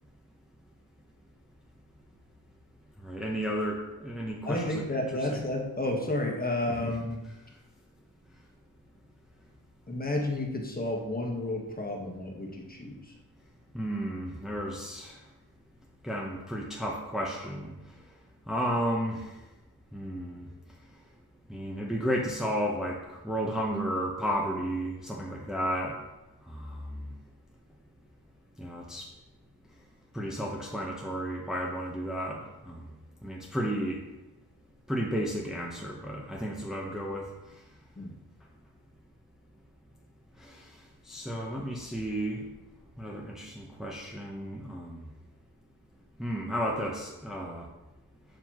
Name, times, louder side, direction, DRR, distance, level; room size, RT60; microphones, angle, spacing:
voice 1, 3.0-4.7 6.8-6.9 13.7-15.2 16.0-17.7 18.5-19.3 19.9-20.5 21.5-26.0 26.5-27.1 28.6-29.1 30.1-32.9 33.2-34.0 34.9-37.3 40.4-40.6 41.1-42.4 43.0-45.0 46.2-47.7, equal, ahead, -2 dB, 0.9 m, -33 dB
voice 2, 4.4-7.2 9.9-13.2 37.9-38.2, left 1 dB, 25° left, 0 dB, 1.4 m, -31 dB
7.7 x 6.8 x 3.0 m, 1.0 s
wide cardioid pair, 85°, 38 cm